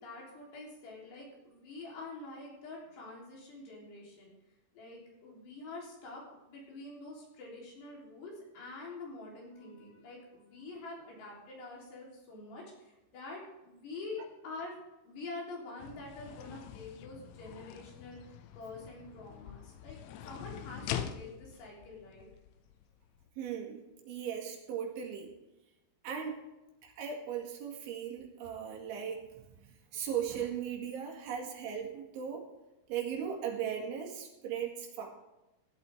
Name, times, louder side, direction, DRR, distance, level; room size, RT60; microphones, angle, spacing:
voice 1, 0.0-4.3 4.7-14.8 15.0-22.3, left 2 dB, 65° left, -3 dB, 5.7 m, -46 dB
sound 1, 15.8-23.3, left 10 dB, 85° left, 3.1 m, -44 dB
voice 2, 23.4-25.3 26.0-26.4 26.8-29.3 29.6-32.5 32.9-35.1, right 8 dB, 85° right, 1 dB, 4.4 m, -38 dB
16.0 x 11.5 x 3.6 m, 0.98 s
omnidirectional pair, 5.3 m